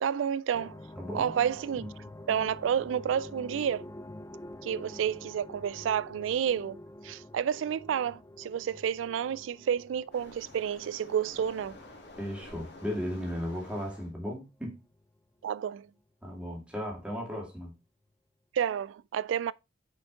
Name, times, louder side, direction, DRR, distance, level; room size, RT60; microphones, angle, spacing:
voice 1, 0.0-0.8 1.1-1.9 2.3-3.8 4.6-6.8 7.0-11.8 15.4-15.9 18.5-19.5, right 8 dB, 85° right, 0.3 m, -30 dB
sound 1, 0.5-14.4 14.9-15.4, left 1 dB, 20° left, 0.5 m, -48 dB
voice 2, 1.0-1.3 1.7-1.9 12.2-14.8 16.2-17.7, equal, 5° right, 2.2 m, -36 dB
Waves surf, 10.1-14.1, left 2 dB, 60° left, 1.7 m, -50 dB
6.1 x 5.0 x 3.7 m
head